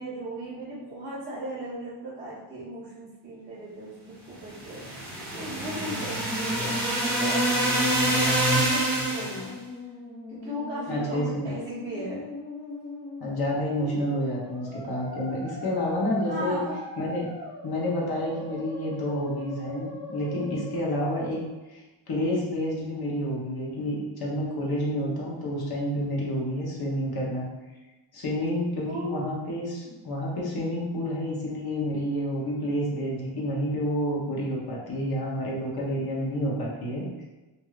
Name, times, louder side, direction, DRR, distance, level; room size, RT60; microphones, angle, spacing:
voice 1, 0.0-4.8 5.3-9.5 10.3-12.2 16.3-16.7 28.9-29.3, right 1 dB, 15° right, -13 dB, 1.1 m, -37 dB
sound 1, 4.5-9.5, right 1 dB, 55° right, 1.3 m, -26 dB
Musical instrument, 8.6-21.6, left 2 dB, 10° left, 0.5 m, -41 dB
voice 2, 10.9-11.5 13.2-16.6 17.0-17.3 17.6-21.4 21.7-27.5 28.1-37.2, equal, 55° left, -4 dB, 0.9 m, -29 dB
3.2 x 2.7 x 2.3 m, 1.1 s
wide cardioid pair, 140°, 46 cm